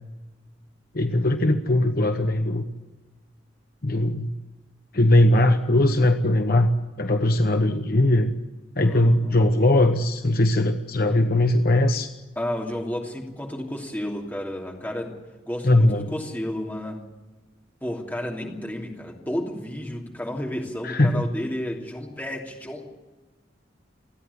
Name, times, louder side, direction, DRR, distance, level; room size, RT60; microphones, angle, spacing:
voice 1, 0.9-2.6 3.8-4.3 4.9-6.7 7.0-8.3 8.8-12.1 15.6-16.1 20.8-21.2, left 1 dB, 50° left, 6 dB, 1.1 m, -20 dB
voice 2, 8.8-9.4 12.4-15.1 15.5-17.0 17.8-22.9, left 1 dB, 10° left, 0 dB, 3.0 m, -32 dB
27.5 x 9.9 x 9.8 m, 1.2 s
head